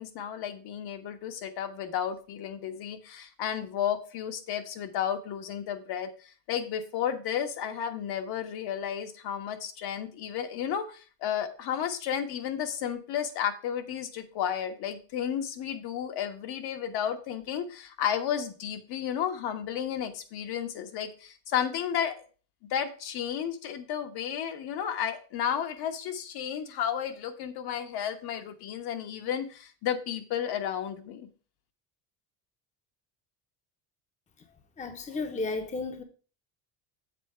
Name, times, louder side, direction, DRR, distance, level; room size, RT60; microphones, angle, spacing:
voice 1, 0.0-22.1 22.7-31.3, left 9 dB, 60° left, 1.4 m, -32 dB
voice 2, 34.8-36.0, left 3 dB, 15° left, 0.9 m, -33 dB
7.5 x 4.2 x 6.7 m
cardioid pair, 140°, 44 cm